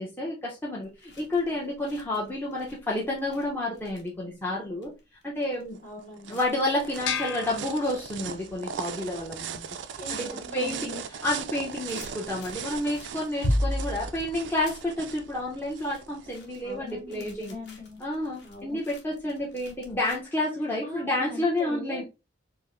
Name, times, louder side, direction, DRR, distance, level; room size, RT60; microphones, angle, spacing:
voice 1, 0.0-4.9 5.2-5.8 6.3-9.6 10.1-17.5 18.0-22.0, left 1 dB, 10° left, -5 dB, 0.7 m, -30 dB
sound 1, 0.8-9.1 9.5-10.3 10.6-20.3, equal, 65° left, 1.0 m, -38 dB
sound 2, 5.7-16.6, right 7 dB, 75° right, 0.4 m, -39 dB
voice 2, 5.8-6.4 10.0-11.0 16.6-18.0 18.4-18.8 20.8-22.1, left 1 dB, 40° left, -4 dB, 1.9 m, -41 dB
sound 3, 7.0-8.5, left 7 dB, 85° left, 0.4 m, -34 dB
4.5 x 2.0 x 3.0 m, 0.27 s
head